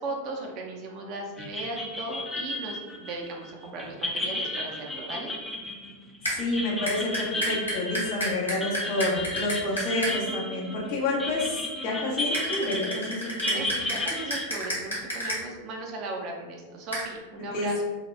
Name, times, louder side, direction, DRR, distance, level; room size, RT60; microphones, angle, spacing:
voice 1, 0.0-5.3 13.2-17.8, right 2 dB, 40° right, 1 dB, 0.5 m, -37 dB
sound 1, 1.4-14.5, left 1 dB, 10° left, 0.4 m, -33 dB
sound 2, 6.2-6.4 6.9-10.1 12.3-15.4 16.9-17.1, equal, 75° left, 0.9 m, -30 dB
voice 2, 6.3-13.6 17.5-17.8, left 2 dB, 50° left, -3 dB, 0.8 m, -29 dB
2.8 x 2.2 x 3.2 m, 1.3 s
figure-of-eight pair, 90°, 0 cm